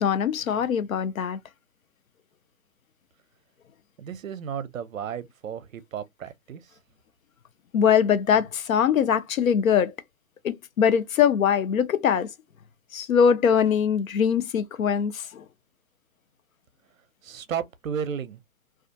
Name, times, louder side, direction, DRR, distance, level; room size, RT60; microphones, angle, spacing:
voice 1, 0.0-1.4 7.7-9.9 10.4-12.3 12.9-15.4, left 7 dB, 70° left, 0.5 m, -22 dB
voice 2, 4.0-6.7 17.2-18.4, right 8 dB, 65° right, 0.6 m, -33 dB
2.4 x 2.2 x 2.5 m
hypercardioid pair, 175°, 43 cm